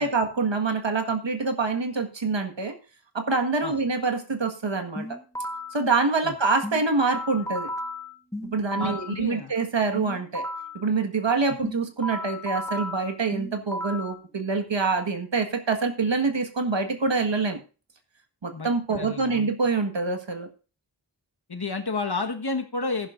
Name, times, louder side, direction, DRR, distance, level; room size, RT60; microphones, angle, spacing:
voice 1, 0.0-2.8 3.1-5.1 5.7-7.7 8.4-10.4 10.7-17.6 18.4-20.5, right 4 dB, 80° right, 6 dB, 1.8 m, -26 dB
sound 1, 5.0-5.8 6.6-9.2 10.0-10.8 11.6-14.2, equal, 5° left, 1.6 m, -34 dB
voice 2, 8.8-9.5 11.5-11.6 18.5-19.5 21.5-23.1, left 3 dB, 60° left, 5 dB, 1.5 m, -31 dB
14.5 x 11.0 x 2.6 m, 0.33 s
wide cardioid pair, 55°, 44 cm